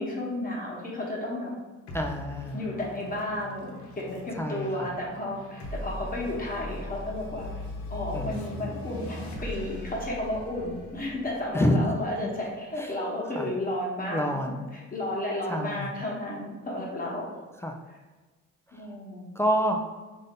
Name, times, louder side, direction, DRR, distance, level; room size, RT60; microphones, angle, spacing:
voice 1, 0.0-1.5 2.5-7.5 7.9-17.4 18.7-19.3, left 1 dB, 30° left, -4 dB, 1.2 m, -33 dB
sound 1, 1.9-12.7, left 2 dB, 65° left, 1.0 m, -40 dB
voice 2, 1.9-2.6 4.4-4.9 8.1-8.7 11.5-11.8 12.8-12.9 13.4-13.5 14.1-14.7 15.5-15.9 17.6-17.8 18.7-18.8 19.4-19.8, equal, 10° left, 2 dB, 0.3 m, -28 dB
3.8 x 2.7 x 3.7 m, 1.3 s
cardioid pair, 90°, 30 cm